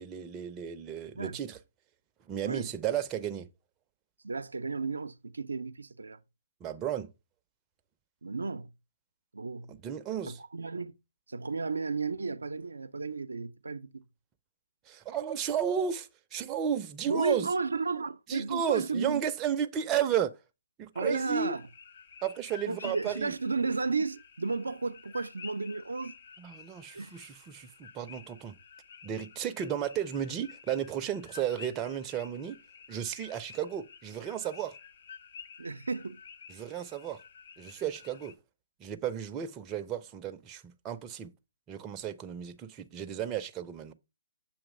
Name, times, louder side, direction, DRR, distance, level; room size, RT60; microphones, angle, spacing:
voice 1, 0.0-1.6 2.3-3.5 6.6-7.1 9.7-10.4 14.9-17.5 18.3-20.3 20.8-21.5 22.2-23.3 23.9-24.0 26.4-28.5 29.0-32.6 32.9-34.8 36.5-37.2 37.6-38.3 38.8-41.3 41.7-43.9, right 9 dB, 20° right, 0.5 m, -33 dB
voice 2, 4.2-6.2 8.2-8.7 9.3-9.7 10.3-10.9 11.3-14.0 17.1-19.2 20.9-21.7 22.7-26.1 26.9-27.1 35.6-36.2, right 4 dB, 85° right, 0.5 m, -33 dB
sound 1, 20.9-38.3, left 6 dB, 55° left, 0.6 m, -51 dB
7.1 x 2.9 x 5.3 m
hypercardioid pair, 145°, 0 cm